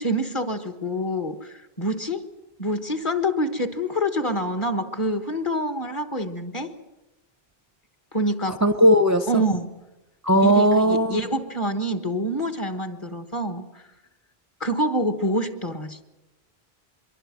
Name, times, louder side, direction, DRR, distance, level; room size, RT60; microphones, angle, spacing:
voice 1, 0.0-2.3 2.6-6.7 8.1-8.6 9.3-9.8 10.4-13.8 14.6-16.1, equal, 30° left, 7 dB, 1.4 m, -26 dB
voice 2, 8.6-9.4 10.2-11.2, equal, 20° right, 8 dB, 0.7 m, -18 dB
25.0 x 22.5 x 6.2 m, 1.0 s
omnidirectional pair, 1.1 m